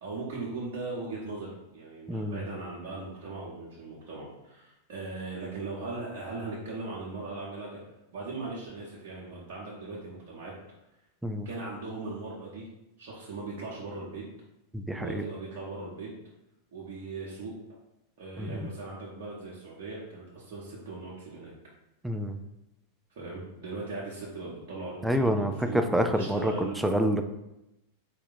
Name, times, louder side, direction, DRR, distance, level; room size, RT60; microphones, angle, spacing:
voice 1, 0.0-7.8 8.1-10.5 11.4-12.7 13.0-14.2 14.9-16.1 16.7-17.5 18.2-21.5 23.1-26.8, right 3 dB, 50° right, -5 dB, 1.0 m, -39 dB
voice 2, 2.1-2.4 11.2-11.5 14.7-15.2 18.4-18.7 22.0-22.3 25.0-27.2, equal, 5° right, 6 dB, 0.4 m, -27 dB
4.2 x 2.8 x 4.0 m, 0.90 s
figure-of-eight pair, 90°, 0 cm